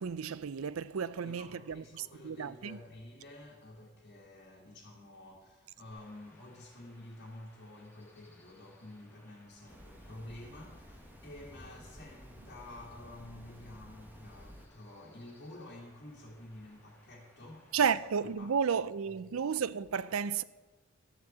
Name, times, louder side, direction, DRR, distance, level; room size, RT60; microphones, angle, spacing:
voice 1, 0.0-2.8 17.7-20.4, right 6 dB, 80° right, 0.5 m, -32 dB
voice 2, 1.0-17.9 18.4-18.5 19.2-19.4, left 1 dB, 50° left, 2.2 m, -50 dB
Chirp tweet / Wind / Stream, 5.9-18.3, left 1 dB, 10° left, 2.6 m, -63 dB
sound 1, 9.7-14.7, equal, 10° right, 1.0 m, -53 dB
13.0 x 7.7 x 7.4 m
head